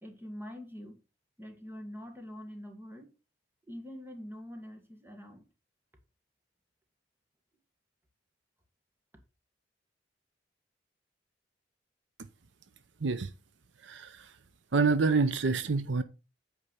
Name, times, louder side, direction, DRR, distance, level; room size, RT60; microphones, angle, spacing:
voice 1, 0.0-1.0 1.4-3.1 3.7-5.4, equal, 10° right, 1.7 m, -44 dB
voice 2, 13.8-14.3 14.7-16.0, right 4 dB, 70° right, 0.7 m, -27 dB
8.6 x 4.7 x 5.4 m
head